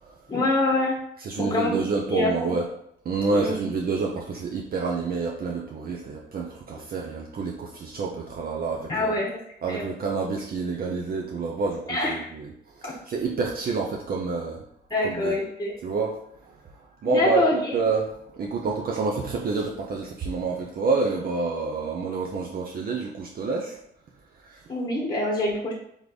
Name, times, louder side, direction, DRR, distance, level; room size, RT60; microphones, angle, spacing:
voice 1, 0.3-0.9 1.4-1.7 2.1-2.5 3.3-3.7 8.9-9.3 9.7-9.8 11.9-12.3 12.8-12.9 14.9-15.7 17.0-17.7 24.7-25.7, left 2 dB, 20° left, -2 dB, 1.1 m, -25 dB
voice 2, 1.2-2.7 3.0-9.2 9.6-14.6 15.0-15.4 15.8-16.2 16.4-23.8 24.4-24.6, right 4 dB, 50° right, -1 dB, 0.6 m, -28 dB
3.5 x 3.1 x 4.1 m, 0.74 s
cardioid pair, 90°, 20 cm